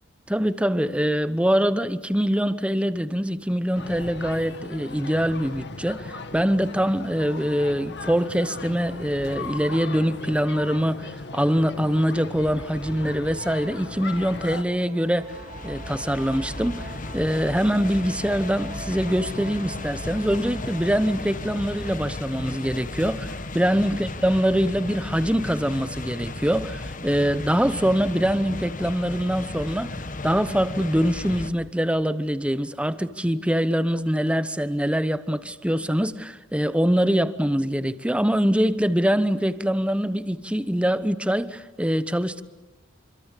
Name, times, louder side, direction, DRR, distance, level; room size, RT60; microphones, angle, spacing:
voice 1, 0.3-15.4 15.6-30.0 30.2-42.4, equal, 5° right, 0.9 m, -24 dB
sound 1, 3.7-14.6, left 3 dB, 60° left, 2.2 m, -37 dB
sound 2, 13.2-23.6, right 3 dB, 35° right, 3.3 m, -45 dB
sound 3, 15.0-31.5, left 2 dB, 40° left, 1.2 m, -35 dB
26.5 x 25.5 x 8.4 m
head